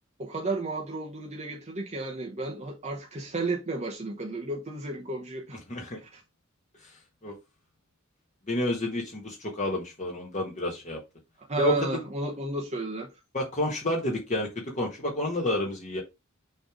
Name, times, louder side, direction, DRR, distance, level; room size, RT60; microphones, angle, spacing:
voice 1, 0.2-5.6 6.1-6.2 11.5-13.1, right 2 dB, 35° right, 1.0 m, -32 dB
voice 2, 5.7-6.0 6.8-7.4 8.5-11.0 11.6-12.0 13.3-16.0, left 1 dB, 35° left, 1.6 m, -30 dB
6.4 x 3.3 x 5.1 m
head